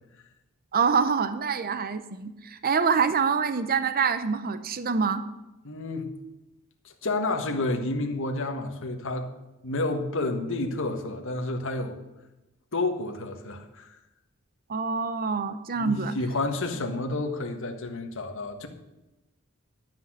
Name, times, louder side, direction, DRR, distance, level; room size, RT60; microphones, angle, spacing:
voice 1, 0.7-5.2 14.7-16.1, right 5 dB, 45° right, 12 dB, 0.7 m, -26 dB
voice 2, 5.6-6.1 6.8-9.3 9.6-12.0 12.7-14.0 15.8-18.7, left 2 dB, 65° left, 4 dB, 1.6 m, -30 dB
12.5 x 6.1 x 7.6 m, 1.0 s
head